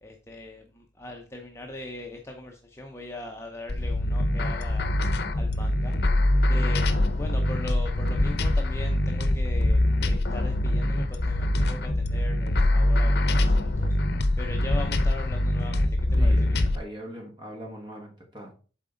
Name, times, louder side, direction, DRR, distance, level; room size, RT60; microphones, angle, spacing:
voice 1, 0.0-4.9 5.4-6.0 6.5-14.0 14.4-16.8, left 2 dB, 15° left, 2 dB, 0.6 m, -40 dB
sound 1, 3.7-16.8, left 1 dB, 60° left, 0.7 m, -24 dB
voice 2, 16.2-18.5, right 1 dB, 25° right, 1 dB, 1.3 m, -41 dB
7.4 x 4.2 x 3.8 m, 0.37 s
head